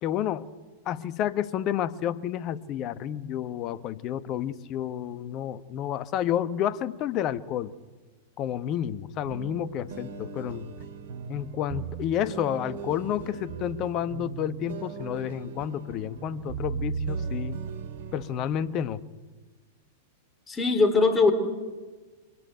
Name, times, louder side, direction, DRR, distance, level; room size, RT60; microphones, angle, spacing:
voice 1, 0.0-0.5 0.8-7.7 8.4-10.7 11.3-17.6 18.1-19.0, left 10 dB, 40° left, 15 dB, 1.1 m, -30 dB
sound 1, 9.2-18.7, right 6 dB, 60° right, 2.3 m, -37 dB
voice 2, 20.5-21.3, left 3 dB, 20° left, 9 dB, 3.9 m, -20 dB
24.5 x 20.0 x 9.1 m, 1.3 s
figure-of-eight pair, 95°, 0 cm